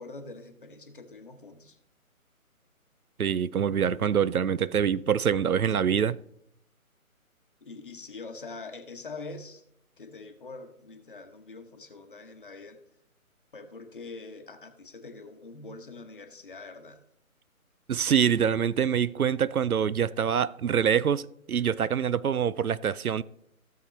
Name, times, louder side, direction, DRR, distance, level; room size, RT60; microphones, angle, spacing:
voice 1, 0.0-1.8 7.6-9.6 10.0-12.8 13.5-17.0, left 3 dB, 35° left, 1.1 m, -44 dB
voice 2, 3.2-6.2 17.9-23.2, right 8 dB, 80° right, 0.5 m, -25 dB
15.5 x 6.9 x 3.2 m
figure-of-eight pair, 150°, 43 cm